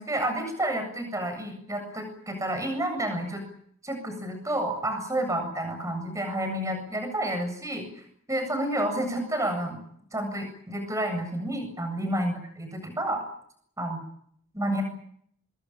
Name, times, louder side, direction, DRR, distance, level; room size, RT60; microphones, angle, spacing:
voice 1, 0.0-3.4 3.8-7.9 8.3-9.8 10.1-13.2 13.8-14.0 14.5-14.8, right 1 dB, 15° right, 6 dB, 7.8 m, -30 dB
25.5 x 22.5 x 9.0 m, 0.67 s
head